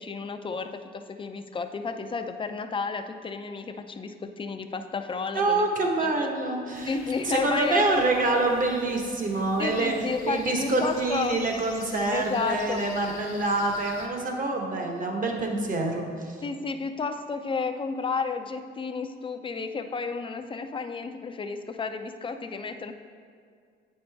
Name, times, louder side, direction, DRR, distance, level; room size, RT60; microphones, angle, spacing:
voice 1, 0.0-5.7 6.0-6.3 6.9-7.8 9.6-11.4 12.1-12.8 16.4-22.9, left 4 dB, 25° left, 8 dB, 0.5 m, -32 dB
voice 2, 5.3-6.9 7.2-9.9 10.2-16.4, right 2 dB, 40° right, 2 dB, 1.2 m, -26 dB
sound 1, 6.7-14.1, left 4 dB, 85° left, 1.0 m, -47 dB
8.5 x 5.3 x 3.4 m, 2.2 s
cardioid pair, 90°, 20 cm